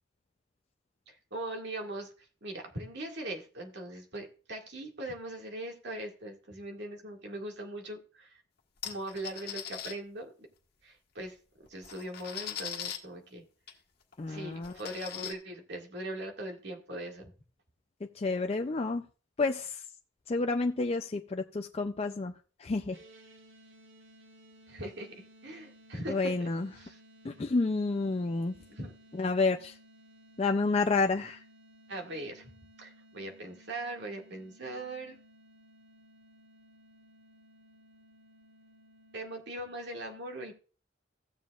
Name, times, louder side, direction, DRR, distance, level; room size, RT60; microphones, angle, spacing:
voice 1, 1.1-8.4 8.8-10.5 10.8-11.4 11.7-13.4 14.2-17.3 24.7-26.5 26.8-27.0 28.7-28.9 31.9-32.5 32.8-35.2 39.1-40.5, right 1 dB, 60° right, 1 dB, 2.0 m, -40 dB
sound 1, 8.8-9.9 11.2-11.3 11.7-13.0 13.7-13.8 14.1-14.2 14.6-15.3, left 9 dB, 55° left, 1.4 m, -40 dB
voice 2, 14.2-14.7 18.2-19.0 19.4-19.8 20.3-22.3 22.6-23.0 26.1-26.7 27.2-28.5 29.2-29.7 30.4-31.4, left 3 dB, 30° left, 5 dB, 0.4 m, -29 dB
sound 2, 22.9-39.2, equal, 80° right, 2.6 m, -58 dB
16.5 x 7.3 x 2.4 m, 0.38 s
head